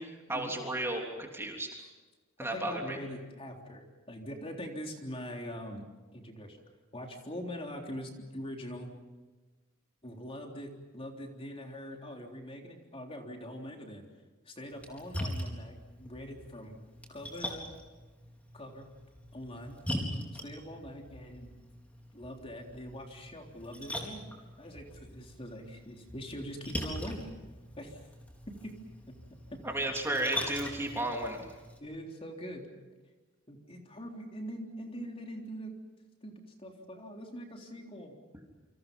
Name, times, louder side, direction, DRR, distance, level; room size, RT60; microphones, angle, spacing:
voice 1, 0.0-1.8 2.4-3.0 29.6-31.4, right 1 dB, 10° right, 1 dB, 3.4 m, -34 dB
voice 2, 2.4-5.8 6.1-6.6 6.9-8.9 10.0-14.0 14.5-16.8 17.1-17.7 18.5-18.9 19.3-19.8 20.4-21.5 22.1-24.2 24.6-27.3 27.8-28.1 28.6-28.7 29.1-29.2 29.5-29.9 31.8-32.7 33.5-35.7 36.2-38.1, equal, 30° left, 2 dB, 3.6 m, -43 dB
Splash splatter, 14.7-31.8, equal, 5° left, 4.4 m, -42 dB
28.5 x 26.5 x 5.5 m, 1.2 s
head